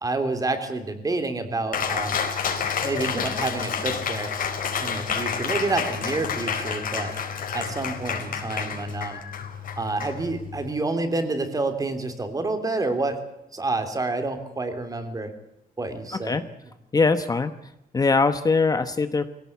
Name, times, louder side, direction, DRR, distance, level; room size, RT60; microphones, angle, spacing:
voice 1, 0.0-2.2 2.8-4.3 4.8-7.1 7.5-9.2 9.8-13.2 13.5-15.3 15.8-16.4, right 3 dB, 25° right, 8 dB, 3.2 m, -28 dB
Cheering, 1.7-10.7, left 6 dB, 70° left, 4.7 m, -29 dB
voice 2, 16.1-16.4 16.9-19.3, left 4 dB, 25° left, 10 dB, 1.0 m, -22 dB
23.5 x 17.5 x 8.3 m, 0.87 s
wide cardioid pair, 175°, 15 cm